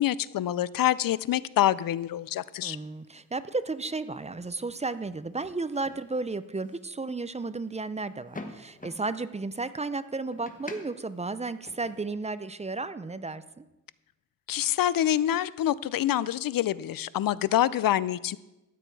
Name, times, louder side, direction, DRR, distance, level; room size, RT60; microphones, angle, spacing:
voice 1, 0.0-2.8 14.5-18.4, left 12 dB, 85° left, 19 dB, 0.5 m, -26 dB
sound 1, 1.6-12.1, left 2 dB, 25° left, 1.2 m, -50 dB
voice 2, 2.6-13.6, right 3 dB, 20° right, 14 dB, 0.4 m, -33 dB
13.0 x 9.0 x 4.7 m, 0.99 s
wide cardioid pair, 105°, 33 cm